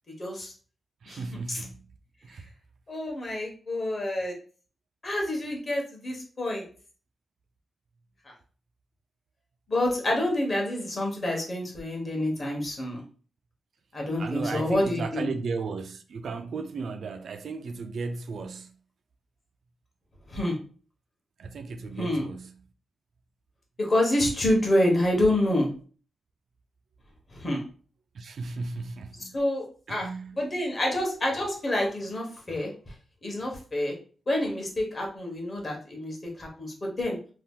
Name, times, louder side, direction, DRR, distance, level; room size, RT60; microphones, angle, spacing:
voice 1, 0.2-0.5 1.1-1.2 1.5-1.6 2.9-4.3 5.0-6.6 9.7-13.0 13.9-15.3 20.3-20.6 22.0-22.3 23.8-25.7 27.3-27.6 29.2-30.1 30.3-32.7 33.2-33.9 34.3-37.2, left 1 dB, 30° left, 0.9 m, -27 dB
voice 2, 1.0-1.8 2.2-2.4 14.2-18.7 21.4-22.5 28.1-29.4 29.9-30.4, right 4 dB, 60° right, 0.3 m, -35 dB
2.8 x 2.2 x 3.5 m
wide cardioid pair, 175°, 0 cm